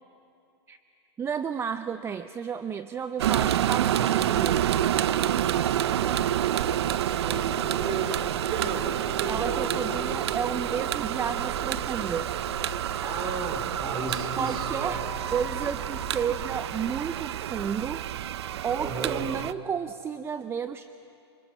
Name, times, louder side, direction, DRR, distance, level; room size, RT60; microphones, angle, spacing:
voice 1, 1.2-4.7 9.3-12.3 14.4-15.0 15.3-18.0 18.6-20.9, right 7 dB, 15° right, 11 dB, 0.5 m, -32 dB
sound 1, 3.2-19.5, right 11 dB, 70° right, 0.6 m, -28 dB
sound 2, 5.0-16.1, left 6 dB, 80° left, 3.0 m, -45 dB
voice 2, 5.7-6.7 7.2-10.2 10.6-10.8 13.0-15.0 18.8-19.3, right 4 dB, 35° right, 4 dB, 4.3 m, -35 dB
26.0 x 25.5 x 6.2 m, 2.6 s
hypercardioid pair, 115°, 14 cm